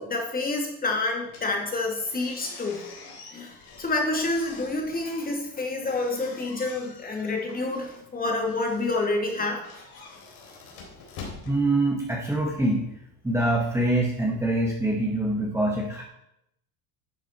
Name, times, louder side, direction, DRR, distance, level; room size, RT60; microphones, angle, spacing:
voice 1, 0.0-2.8 3.3-9.6, left 2 dB, 20° left, 1 dB, 2.5 m, -28 dB
sound 1, 1.2-12.4, left 4 dB, 65° left, 3.6 m, -47 dB
voice 2, 11.5-12.8 13.2-16.0, right 1 dB, 5° right, -2 dB, 1.6 m, -24 dB
11.5 x 7.2 x 4.5 m, 0.79 s
supercardioid pair, 115°, 43 cm